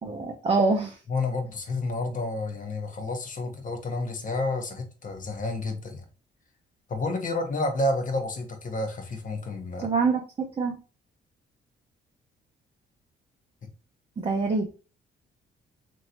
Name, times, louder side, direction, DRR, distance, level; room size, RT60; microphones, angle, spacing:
voice 1, 0.0-1.0 9.8-10.7 14.2-14.7, right 4 dB, 30° right, 0.6 m, -25 dB
voice 2, 1.1-6.0 6.9-9.9 13.6-13.7, left 2 dB, 40° left, 0.9 m, -30 dB
3.0 x 2.6 x 2.7 m
cardioid pair, 90°, 20 cm